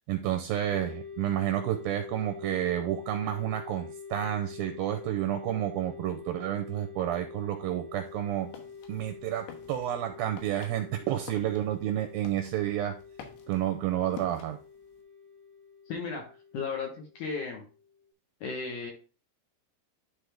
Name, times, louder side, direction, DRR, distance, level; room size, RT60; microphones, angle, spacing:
voice 1, 0.1-8.5 8.9-13.0 13.5-14.6, right 12 dB, 80° right, 6 dB, 2.1 m, -30 dB
sound 1, 0.7-18.1, left 6 dB, 55° right, 0.4 m, -46 dB
sound 2, 8.1-15.0, left 8 dB, 90° left, 3.3 m, -50 dB
voice 2, 15.9-17.6 18.4-18.9, left 4 dB, 65° left, 0 dB, 2.2 m, -35 dB
11.5 x 3.9 x 3.4 m, 0.36 s
omnidirectional pair, 4.8 m